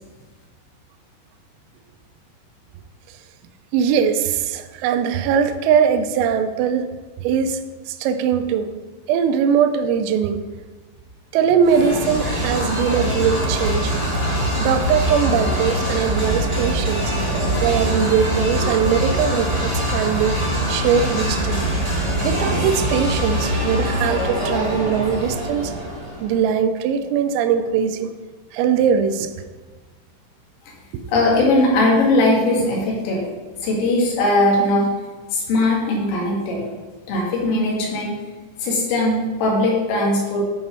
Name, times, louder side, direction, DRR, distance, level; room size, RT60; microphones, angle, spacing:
voice 1, 3.7-6.9 7.2-7.6 7.9-8.7 9.1-10.4 11.3-14.0 14.6-17.1 17.6-20.4 20.7-21.7 22.2-25.7 26.2-28.1 28.5-29.3 31.0-31.1, right 7 dB, 85° right, 8 dB, 3.3 m, -21 dB
sound 1, 11.6-26.3, equal, 45° right, 0.5 m, -23 dB
voice 2, 31.1-33.2 33.6-34.9 35.3-36.6 37.1-38.2 38.6-40.4, left 2 dB, 80° left, -2 dB, 4.4 m, -19 dB
10.0 x 5.2 x 5.4 m, 1.3 s
omnidirectional pair, 5.9 m